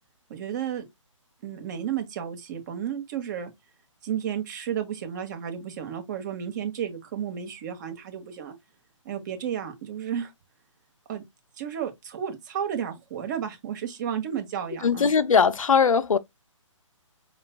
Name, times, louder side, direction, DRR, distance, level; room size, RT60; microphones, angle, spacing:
voice 1, 0.3-0.8 1.4-3.5 4.0-8.5 9.0-10.3 11.1-11.2 11.6-15.1, right 9 dB, 35° right, 1.4 m, -32 dB
voice 2, 14.8-16.2, left 6 dB, 80° left, 0.7 m, -20 dB
5.7 x 3.0 x 2.4 m
hypercardioid pair, 150°, 17 cm